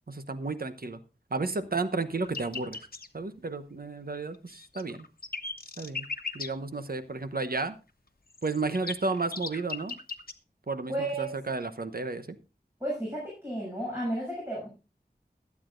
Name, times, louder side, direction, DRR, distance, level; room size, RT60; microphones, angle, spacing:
voice 1, 0.1-1.0 1.3-2.8 3.1-5.0 5.8-6.1 6.3-7.7 8.4-10.0 10.7-10.9 11.2-12.4, right 3 dB, 60° right, 10 dB, 1.0 m, -32 dB
sound 1, 2.2-3.1 4.3-6.5 8.3-10.3, left 4 dB, 60° left, 1.1 m, -37 dB
voice 2, 10.9-11.3 12.8-14.7, right 1 dB, 15° right, -5 dB, 7.0 m, -32 dB
21.5 x 8.5 x 2.6 m, 0.31 s
wide cardioid pair, 40°, 17 cm